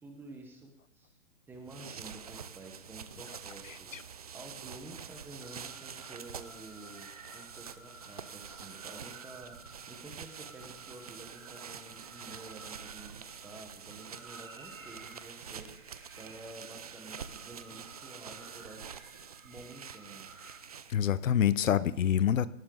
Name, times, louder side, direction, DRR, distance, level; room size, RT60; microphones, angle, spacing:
voice 1, 0.0-1.2 1.5-3.9 4.3-18.9 19.4-20.3, right 2 dB, 5° right, 4 dB, 1.1 m, -50 dB
sound 1, 1.5-21.1, right 7 dB, 30° right, 0.5 m, -47 dB
voice 2, 3.7-4.0 20.9-22.5, left 9 dB, 70° left, 16 dB, 0.9 m, -27 dB
sound 2, 5.4-20.6, right 3 dB, 85° right, 2.8 m, -54 dB
18.5 x 12.5 x 3.9 m, 0.76 s
hypercardioid pair, 155°, 40 cm